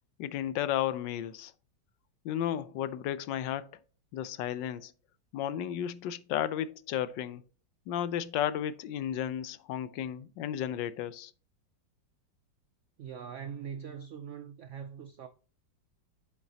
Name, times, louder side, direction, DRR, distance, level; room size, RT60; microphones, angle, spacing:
voice 1, 0.2-1.5 2.2-3.7 4.1-4.9 5.3-7.4 7.9-11.3, left 10 dB, 80° left, 1.3 m, -33 dB
voice 2, 13.0-15.3, right 7 dB, 90° right, 0.6 m, -42 dB
7.9 x 7.2 x 2.8 m
omnidirectional pair, 2.0 m